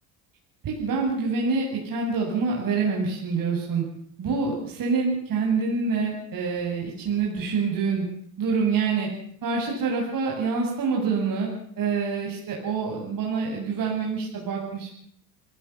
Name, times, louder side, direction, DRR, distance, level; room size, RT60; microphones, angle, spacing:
voice 1, 0.6-3.8 4.2-8.0 8.4-9.1 9.4-11.5 11.8-14.9, right 4 dB, 45° right, -1 dB, 7.7 m, -26 dB
28.0 x 18.0 x 7.3 m, 0.65 s
hypercardioid pair, 75°, 47 cm